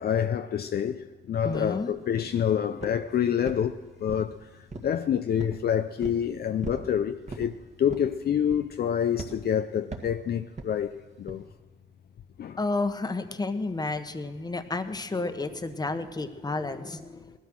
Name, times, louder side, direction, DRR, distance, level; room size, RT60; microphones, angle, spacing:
voice 1, 0.0-4.4 4.8-7.5 7.8-11.4 12.4-12.6, left 9 dB, 50° left, 0.6 m, -27 dB
voice 2, 1.4-1.9 12.6-17.4, left 3 dB, 20° left, 1.3 m, -31 dB
sound 1, 1.5-1.7 2.1-2.4 2.8-3.1 3.4-4.3 4.7-5.0 5.4-5.6 6.0-6.2 6.6-6.9 7.3-7.5 7.9-8.2 8.5-8.8 9.2-9.4 9.9-10.2 10.6-10.8 11.3-11.4, right 3 dB, 35° right, 2.0 m, -39 dB
18.5 x 12.5 x 6.3 m
cardioid pair, 90°, 20 cm